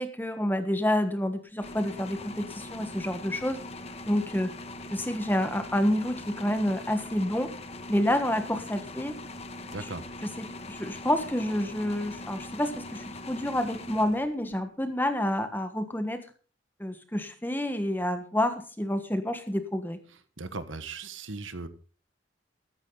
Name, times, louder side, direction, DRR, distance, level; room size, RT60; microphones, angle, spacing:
voice 1, 0.0-3.6 4.1-4.5 4.9-7.5 7.9-9.2 9.7-9.9 10.4-16.2 16.8-20.0, left 1 dB, 10° left, 8 dB, 1.4 m, -28 dB
sound 1, 1.6-14.6, left 2 dB, 35° left, 1.1 m, -42 dB
voice 2, 9.7-10.0 20.4-21.7, right 3 dB, 90° right, 11 dB, 1.4 m, -37 dB
14.0 x 13.5 x 3.9 m, 0.38 s
head